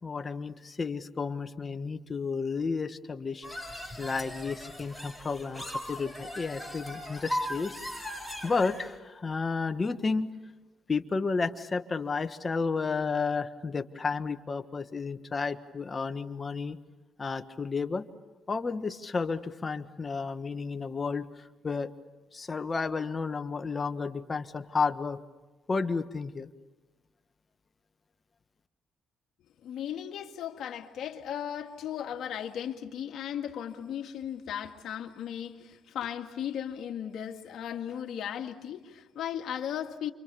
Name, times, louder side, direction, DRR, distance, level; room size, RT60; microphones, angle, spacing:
voice 1, 0.0-8.1 8.4-10.3 10.9-16.8 17.2-18.0 18.5-21.9 22.3-25.2 25.7-26.5, left 4 dB, 30° left, 9 dB, 1.4 m, -32 dB
sound 1, 3.4-8.9, equal, 5° right, 6.9 m, -38 dB
voice 2, 29.6-40.1, left 9 dB, 70° left, 4 dB, 2.0 m, -36 dB
29.0 x 25.0 x 7.0 m, 1.2 s
cardioid pair, 90°, 0 cm